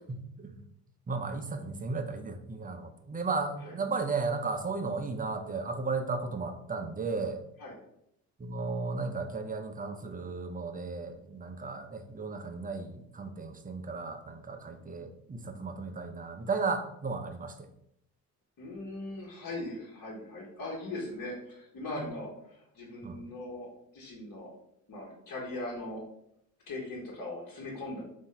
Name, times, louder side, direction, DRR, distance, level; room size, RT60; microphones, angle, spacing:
voice 1, 0.1-0.6 1.1-7.4 8.4-17.7 22.0-22.1 23.0-23.2, right 4 dB, 20° right, 7 dB, 0.6 m, -35 dB
voice 2, 18.6-23.7 23.9-24.5 24.9-26.0 26.7-28.0, left 2 dB, 50° left, -4 dB, 1.4 m, -40 dB
4.0 x 2.7 x 3.9 m, 0.75 s
hypercardioid pair, 50°, 41 cm